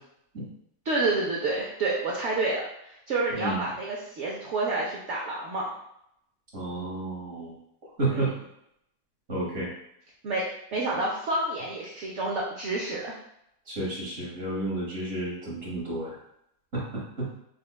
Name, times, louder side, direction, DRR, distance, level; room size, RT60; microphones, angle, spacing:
voice 1, 0.8-5.7 8.0-8.3 10.2-10.4 10.7-13.1, right 2 dB, 70° right, -3 dB, 0.7 m, -29 dB
voice 2, 6.5-7.5 8.0-8.3 9.3-9.7 13.7-16.2 16.7-17.3, right 2 dB, 45° right, -7 dB, 1.2 m, -31 dB
5.0 x 2.2 x 2.2 m, 0.77 s
omnidirectional pair, 1.7 m